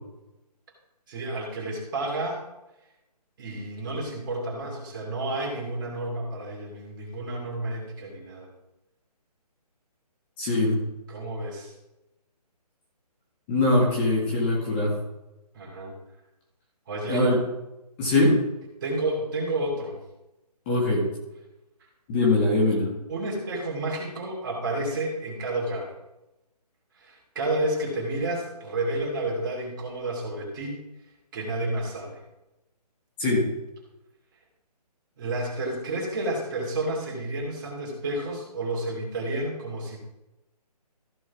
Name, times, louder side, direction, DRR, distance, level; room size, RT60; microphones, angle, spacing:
voice 1, 1.1-2.4 3.4-8.5 11.1-11.7 15.5-16.0 16.9-17.3 18.8-20.0 23.1-25.9 26.9-30.8 31.3-32.2 35.2-40.0, right 2 dB, 30° right, -2 dB, 2.6 m, -30 dB
voice 2, 10.4-10.8 13.5-14.9 17.1-17.4 18.0-18.4 20.7-21.0 22.1-22.9 33.2-33.4, left 2 dB, 15° left, -3 dB, 2.0 m, -22 dB
14.5 x 6.1 x 3.6 m, 0.96 s
hypercardioid pair, 165°, 21 cm